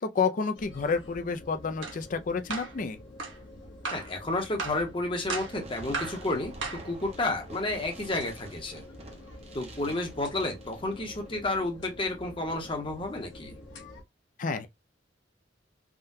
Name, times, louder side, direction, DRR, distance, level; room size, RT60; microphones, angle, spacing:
voice 1, 0.0-3.0 14.4-14.7, left 5 dB, 45° left, 0.4 m, -29 dB
sound 1, 0.5-14.0, left 1 dB, 75° left, 1.0 m, -48 dB
sound 2, 1.8-2.0 2.5-2.7 3.2-3.4 3.8-4.1 4.6-4.8 5.3-5.6 5.9-6.2 6.6-6.9, right 4 dB, 80° right, 1.2 m, -34 dB
voice 2, 3.9-8.8 9.5-13.6, left 2 dB, 25° left, 0.8 m, -31 dB
Fireworks, 5.4-11.4, right 2 dB, 35° right, 0.7 m, -48 dB
3.6 x 2.2 x 2.6 m
head